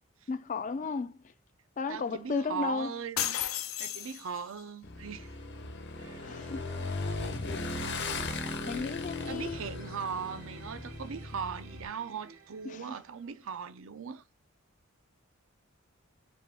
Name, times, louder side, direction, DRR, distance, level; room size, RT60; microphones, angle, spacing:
voice 1, 0.3-1.3 1.8-3.0 6.2-6.6 6.9-7.0 8.7-9.6 12.6-12.9, left 4 dB, 35° left, 0.4 m, -34 dB
voice 2, 1.9-3.4 3.8-5.4 9.3-14.2, right 6 dB, 65° right, 0.5 m, -39 dB
sound 1, 3.2-4.6, left 11 dB, 85° left, 0.6 m, -33 dB
Motorcycle / Engine, 4.8-11.9, left 3 dB, 55° left, 0.9 m, -37 dB
sound 2, 6.0-13.4, right 5 dB, 90° right, 1.2 m, -55 dB
5.2 x 2.3 x 3.4 m
head